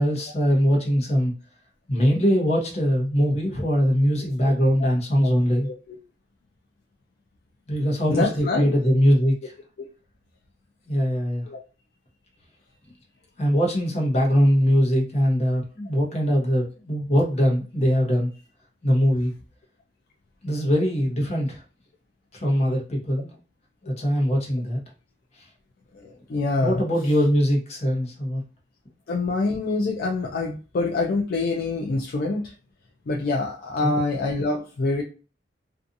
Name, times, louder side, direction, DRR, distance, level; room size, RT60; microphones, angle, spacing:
voice 1, 0.0-1.3 1.9-5.7 7.7-9.5 10.9-11.5 13.4-18.3 18.8-19.3 20.4-21.6 22.3-23.3 23.8-24.8 26.6-28.4 33.8-33.9, equal, 35° left, -1 dB, 0.8 m, -22 dB
voice 2, 4.2-4.5 4.8-4.9 5.2-5.3 5.6-6.0 8.1-8.8 11.5-11.6 17.1-17.2 25.9-26.8 29.1-32.5 33.1-35.0, left 3 dB, 55° left, -1 dB, 0.4 m, -26 dB
2.6 x 2.4 x 2.5 m, 0.35 s
head